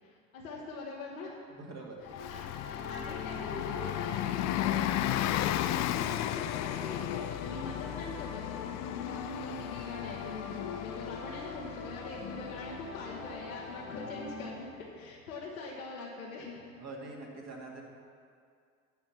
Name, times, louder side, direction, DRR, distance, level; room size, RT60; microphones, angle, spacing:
voice 1, 0.0-1.3 2.3-5.2 5.5-16.6, left 3 dB, 85° left, -5 dB, 1.3 m, -43 dB
voice 2, 1.5-2.0 16.8-17.8, right 2 dB, 40° right, -1 dB, 2.1 m, -44 dB
sound 1, 2.0-14.5, left 4 dB, 65° left, 1.4 m, -43 dB
Bus, 2.1-14.4, left 14 dB, 45° left, 0.4 m, -35 dB
11.0 x 4.4 x 7.3 m, 2.3 s
hypercardioid pair, 70°, 41 cm